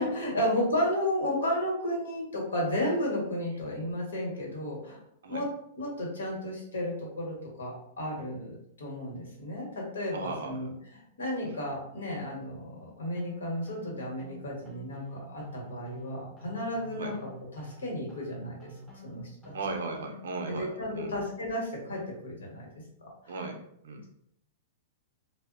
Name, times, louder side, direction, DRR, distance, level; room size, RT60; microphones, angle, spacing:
voice 1, 0.0-5.0 5.3-5.5 5.8-10.7 11.2-17.2 17.5-18.7 19.0-19.5 20.5-22.7 23.0-23.1, left 1 dB, 90° left, -2 dB, 1.1 m, -33 dB
voice 2, 10.1-10.7 11.4-11.6 17.0-17.2 19.5-21.1 23.3-24.0, right 3 dB, 80° right, 4 dB, 0.5 m, -37 dB
sound 1, 13.2-20.6, left 1 dB, ahead, 0.5 m, -48 dB
2.1 x 2.0 x 3.7 m, 0.72 s
hypercardioid pair, 125°, 0 cm